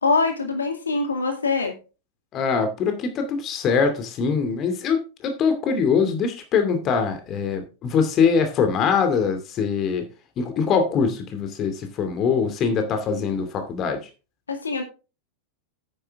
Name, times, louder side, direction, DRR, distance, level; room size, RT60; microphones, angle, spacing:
voice 1, 0.0-1.8 14.5-14.8, left 4 dB, 75° left, 2.2 m, -23 dB
voice 2, 2.3-10.1 10.4-14.0, left 6 dB, 30° left, 2.4 m, -23 dB
10.0 x 9.7 x 3.6 m
figure-of-eight pair, 90°, 0 cm